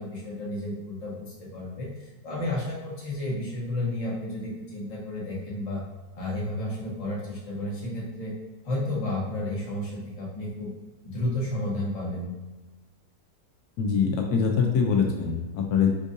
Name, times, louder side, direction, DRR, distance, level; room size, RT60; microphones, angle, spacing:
voice 1, 0.0-5.8 6.1-8.3 8.6-10.7 11.0-12.3, left 1 dB, 25° left, -6 dB, 0.8 m, -32 dB
voice 2, 13.8-15.9, left 6 dB, 70° left, 2 dB, 1.0 m, -23 dB
4.5 x 2.5 x 2.6 m, 1.2 s
omnidirectional pair, 1.9 m